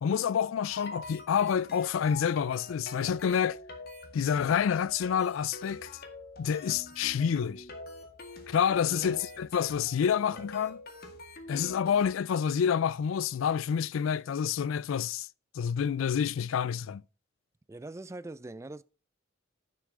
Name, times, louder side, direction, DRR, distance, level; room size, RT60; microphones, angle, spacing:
voice 1, 0.0-3.6 4.1-5.9 6.4-7.7 8.5-10.8 11.5-15.3 15.5-17.0, left 7 dB, 85° left, 0.4 m, -28 dB
sound 1, 0.7-12.1, left 2 dB, 50° left, 1.9 m, -45 dB
voice 2, 8.8-9.2 10.3-10.5 17.7-18.8, right 2 dB, 15° right, 0.3 m, -43 dB
11.0 x 6.6 x 3.6 m
head